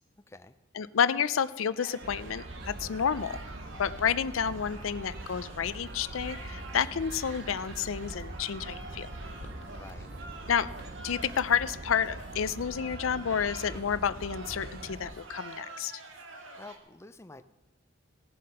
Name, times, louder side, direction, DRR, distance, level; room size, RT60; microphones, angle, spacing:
voice 1, 0.7-3.4 3.8-9.1 10.5-10.7 11.0-16.0, left 7 dB, 90° left, 16 dB, 0.5 m, -30 dB
sound 1, 1.8-16.8, right 2 dB, 75° right, 1.7 m, -48 dB
sound 2, 2.0-15.1, right 2 dB, 50° right, 1.0 m, -43 dB
sound 3, 3.2-12.9, left 1 dB, 60° left, 1.6 m, -55 dB
voice 2, 9.6-10.1 16.6-17.4, left 2 dB, 15° left, 10 dB, 0.5 m, -48 dB
17.0 x 7.5 x 5.6 m, 0.98 s
head